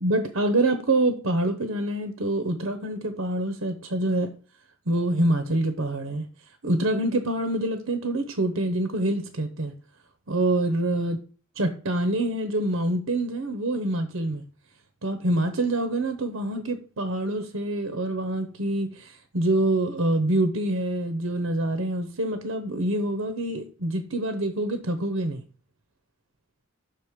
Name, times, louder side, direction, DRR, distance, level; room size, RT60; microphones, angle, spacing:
voice 1, 0.0-4.3 4.9-6.3 6.6-9.7 10.3-11.2 11.6-14.4 15.0-25.4, right 1 dB, 80° right, 0.9 m, -26 dB
6.3 x 4.7 x 5.1 m
head